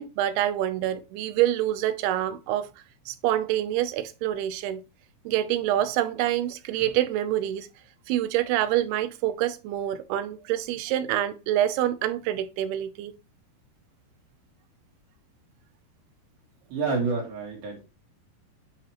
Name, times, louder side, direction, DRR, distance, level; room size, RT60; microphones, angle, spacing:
voice 1, 0.0-2.7 3.1-4.8 5.3-7.7 8.1-13.1, right 12 dB, 90° right, 2.7 m, -26 dB
voice 2, 16.7-17.8, right 4 dB, 70° right, 4.5 m, -28 dB
10.0 x 4.1 x 3.0 m
omnidirectional pair, 4.4 m